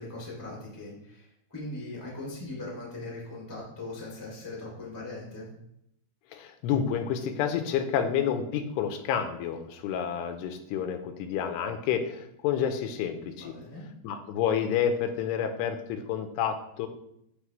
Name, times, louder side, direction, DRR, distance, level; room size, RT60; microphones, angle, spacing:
voice 1, 0.0-5.5 13.4-13.8, left 2 dB, 10° left, -4 dB, 0.9 m, -40 dB
voice 2, 6.3-13.5 14.0-16.9, left 8 dB, 90° left, 7 dB, 2.8 m, -29 dB
11.0 x 4.0 x 3.1 m, 0.76 s
omnidirectional pair, 4.8 m